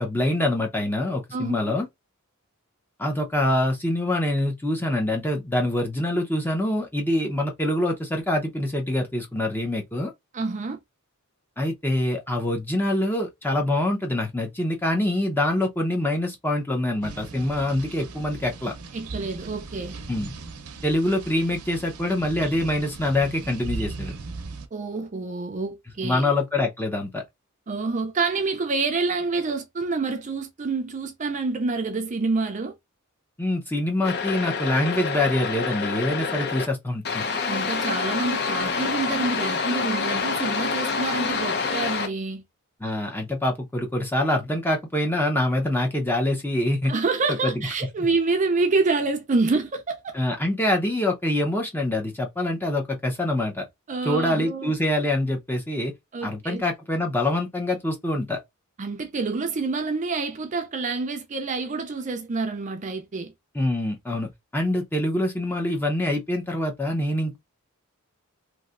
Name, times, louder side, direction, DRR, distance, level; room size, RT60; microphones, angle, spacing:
voice 1, 0.0-1.9 3.0-10.1 11.6-18.7 20.1-20.3 20.8-24.1 26.0-27.2 33.4-37.2 42.8-46.9 47.4-47.5 48.0-48.1 50.1-53.7 54.0-55.9 56.2-58.4 63.5-67.4, left 1 dB, 10° left, 0.6 m, -25 dB
voice 2, 1.3-1.7 10.3-10.8 18.9-20.0 24.7-26.3 27.7-32.7 37.4-42.4 46.9-50.1 53.9-54.7 56.1-56.6 58.8-63.3, right 3 dB, 35° right, 0.4 m, -27 dB
sound 1, 17.0-24.7, right 3 dB, 85° right, 0.6 m, -38 dB
sound 2, 34.0-36.7 37.1-42.1, left 5 dB, 50° left, 0.6 m, -27 dB
3.1 x 2.6 x 2.4 m
head